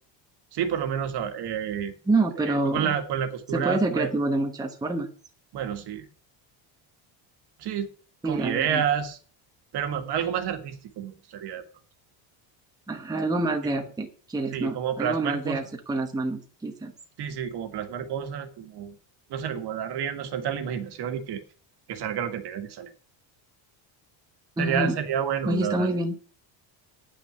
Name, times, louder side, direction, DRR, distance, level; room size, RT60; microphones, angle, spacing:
voice 1, 0.5-1.9 2.5-4.1 5.5-6.1 7.6-7.9 8.2-9.2 9.7-11.7 14.5-15.7 17.2-19.0 19.3-21.4 21.9-22.9 24.6-25.9, right 8 dB, 55° right, 7 dB, 1.9 m, -29 dB
voice 2, 2.1-2.9 3.5-5.1 8.2-8.8 12.9-16.9 24.6-25.0 25.4-26.1, right 2 dB, 10° right, 3 dB, 1.1 m, -27 dB
9.8 x 6.0 x 7.9 m, 0.40 s
cardioid pair, 155°, 47 cm